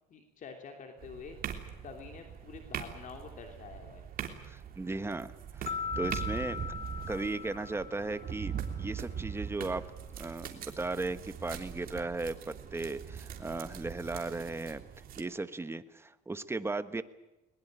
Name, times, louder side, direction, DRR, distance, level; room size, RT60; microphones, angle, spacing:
voice 1, 0.1-1.4 1.8-4.1, left 5 dB, 50° left, 3 dB, 3.0 m, -47 dB
sound 1, 1.0-15.2, right 9 dB, 60° right, 3.2 m, -45 dB
voice 2, 4.5-6.6 7.1-8.5 8.8-9.8 10.2-14.8 15.2-17.0, right 3 dB, 15° right, 12 dB, 1.3 m, -36 dB
sound 2, 5.7-8.8, left 6 dB, 35° left, 1.0 m, -40 dB
sound 3, 5.8-10.5 10.8-12.0 12.6-14.2, right 7 dB, 45° right, 2.0 m, -40 dB
21.5 x 21.0 x 8.9 m, 1.0 s
cardioid pair, 110°, 17 cm